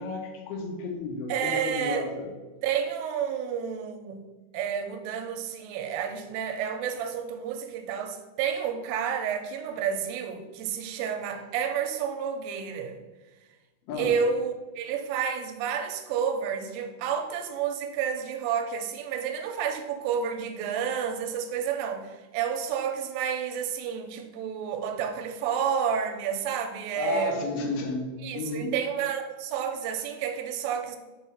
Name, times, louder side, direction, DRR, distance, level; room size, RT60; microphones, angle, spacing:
voice 1, 0.0-2.3 13.9-14.1 27.0-28.7, left 3 dB, 85° left, 2 dB, 3.0 m, -32 dB
voice 2, 1.3-2.0 2.6-4.2 4.5-13.0 14.0-27.4 28.2-31.0, right 7 dB, 80° right, 6 dB, 2.3 m, -30 dB
6.2 x 4.0 x 5.8 m, 1.2 s
omnidirectional pair, 4.3 m